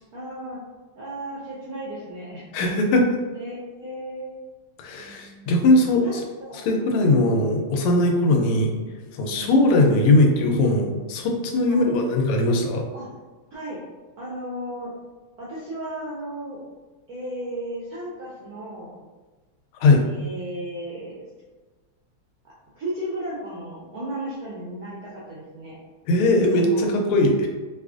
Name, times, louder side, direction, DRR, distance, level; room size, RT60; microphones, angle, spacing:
voice 1, 0.1-0.6 1.0-2.7 3.3-4.3 5.0-7.1 9.3-9.7 11.7-11.9 12.9-13.1 13.5-13.8 14.2-14.9 15.4-16.6 17.1-19.0 20.0-21.2 22.4-25.8 26.5-27.0, right 1 dB, 70° right, -7 dB, 0.9 m, -35 dB
voice 2, 2.5-3.1 4.8-6.0 6.6-8.7 9.2-12.8 19.8-20.0 26.1-27.5, left 2 dB, 85° left, 2 dB, 1.5 m, -19 dB
5.0 x 2.4 x 2.4 m, 1.3 s
omnidirectional pair, 2.4 m